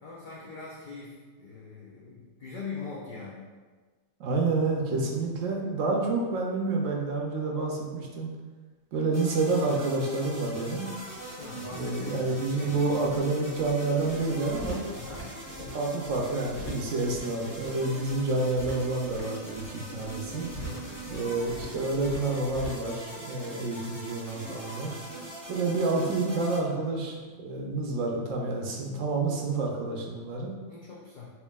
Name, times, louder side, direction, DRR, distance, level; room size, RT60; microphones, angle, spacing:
voice 1, 0.0-3.5 11.4-13.2 14.9-15.3 20.5-20.9 25.2-25.4 30.6-31.3, left 4 dB, 75° left, -6 dB, 0.4 m, -42 dB
voice 2, 4.2-8.3 8.9-10.9 11.7-14.8 15.7-20.5 21.1-24.9 25.5-30.5, right 3 dB, 70° right, -1 dB, 0.9 m, -29 dB
sound 1, 9.1-26.6, right 1 dB, 15° left, 0.6 m, -42 dB
sound 2, 10.9-22.9, right 1 dB, 35° left, 1.6 m, -45 dB
4.4 x 2.8 x 2.3 m, 1.4 s
omnidirectional pair, 1.5 m